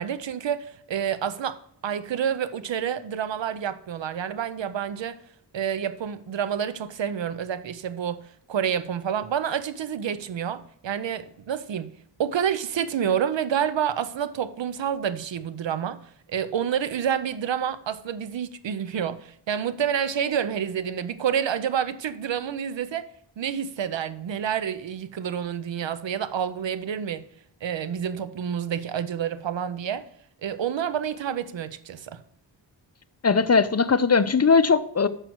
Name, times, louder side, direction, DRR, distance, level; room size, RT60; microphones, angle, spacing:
voice 1, 0.0-5.2 5.5-16.0 16.3-23.1 23.4-27.3 27.6-30.1 30.4-32.2, right 8 dB, 90° right, 0.6 m, -28 dB
voice 2, 33.2-35.1, left 5 dB, 35° left, 0.6 m, -19 dB
6.6 x 6.1 x 6.0 m
wide cardioid pair, 55°, 43 cm